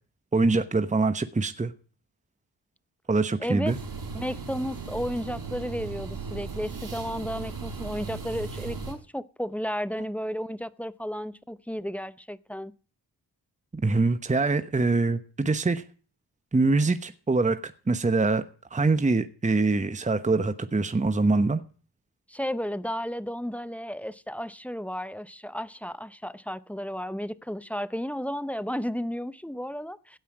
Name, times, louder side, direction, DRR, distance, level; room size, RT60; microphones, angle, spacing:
voice 1, 0.3-1.7 3.1-3.8 13.8-15.8 16.5-18.4 18.7-21.6, right 3 dB, 20° right, 1.0 m, -24 dB
voice 2, 3.4-3.7 4.1-12.7 22.3-30.2, equal, 5° left, 0.7 m, -33 dB
sound 1, 3.7-8.9, right 4 dB, 60° right, 4.6 m, -37 dB
16.5 x 5.6 x 8.5 m
cardioid pair, 65°, 41 cm